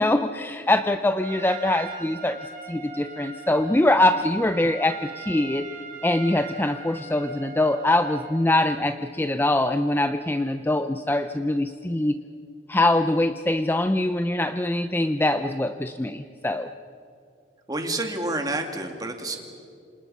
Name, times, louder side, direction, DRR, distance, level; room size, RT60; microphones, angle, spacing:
voice 1, 0.0-2.4 2.7-5.7 6.0-12.2 12.7-16.7, left 1 dB, 10° left, 9 dB, 0.5 m, -23 dB
Trumpet, 1.2-8.5, right 5 dB, 40° right, 5.3 m, -41 dB
voice 2, 17.7-19.4, right 2 dB, 20° right, 4 dB, 2.3 m, -29 dB
27.5 x 27.0 x 5.6 m, 2.4 s
head